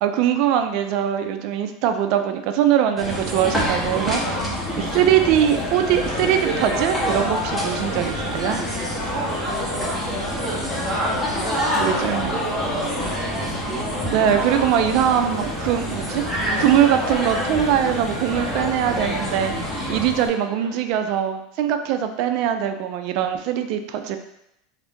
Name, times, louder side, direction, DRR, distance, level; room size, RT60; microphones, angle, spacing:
voice 1, 0.0-4.2 4.8-8.6 11.7-12.4 14.1-16.2 16.6-19.5 19.9-24.2, right 10 dB, 60° right, 7 dB, 0.3 m, -21 dB
sound 1, 3.0-20.1, equal, 5° left, 0.9 m, -27 dB
sound 2, 3.5-20.3, left 1 dB, 40° left, 1.1 m, -34 dB
sound 3, 4.6-20.8, left 2 dB, 70° left, 1.2 m, -36 dB
voice 2, 9.1-10.3 11.3-14.0, right 1 dB, 25° right, -3 dB, 1.0 m, -33 dB
2.6 x 2.4 x 3.5 m, 0.82 s
supercardioid pair, 120°, 0 cm